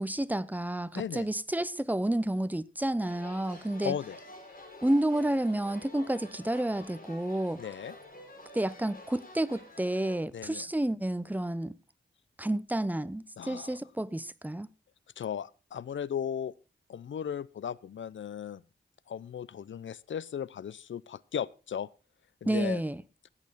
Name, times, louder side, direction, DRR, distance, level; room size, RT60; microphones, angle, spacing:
voice 1, 0.0-3.9 4.8-7.6 8.5-11.8 12.4-14.7 22.4-23.0, right 1 dB, 10° right, 0.6 m, -30 dB
voice 2, 0.9-1.3 3.8-4.2 7.6-7.9 10.3-10.7 13.4-13.8 15.2-16.5 16.9-18.6 19.1-21.9 22.4-22.8, left 8 dB, 75° left, 0.5 m, -36 dB
sound 1, 3.0-10.2, left 1 dB, 45° left, 5.8 m, -49 dB
15.5 x 8.6 x 4.0 m
wide cardioid pair, 75°, 20 cm